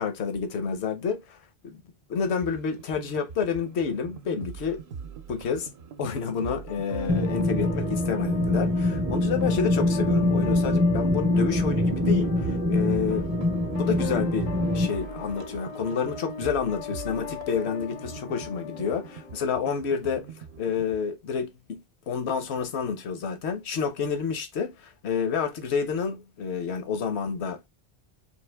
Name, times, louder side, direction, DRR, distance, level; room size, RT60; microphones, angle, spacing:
voice 1, 0.0-1.8 2.1-4.8 5.3-5.7 6.0-13.3 13.7-21.8 22.1-27.7, left 6 dB, 85° left, 1.1 m, -29 dB
sound 1, 2.2-21.1, right 6 dB, 60° right, 0.7 m, -42 dB
sound 2, 6.7-19.7, left 8 dB, 60° left, 0.3 m, -39 dB
sound 3, 7.1-14.9, left 1 dB, 25° right, 0.3 m, -24 dB
4.5 x 2.8 x 3.3 m
omnidirectional pair, 1.1 m